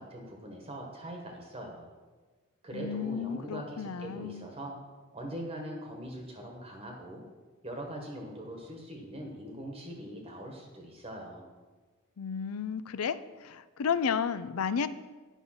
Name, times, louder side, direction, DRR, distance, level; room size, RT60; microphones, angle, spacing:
voice 1, 0.0-1.9 2.6-4.8 5.1-7.2 7.6-11.5, right 1 dB, 25° right, 1 dB, 1.2 m, -42 dB
voice 2, 2.7-4.4 12.2-13.2 13.4-14.9, left 6 dB, 85° left, 14 dB, 0.5 m, -32 dB
10.0 x 5.5 x 5.7 m, 1.3 s
head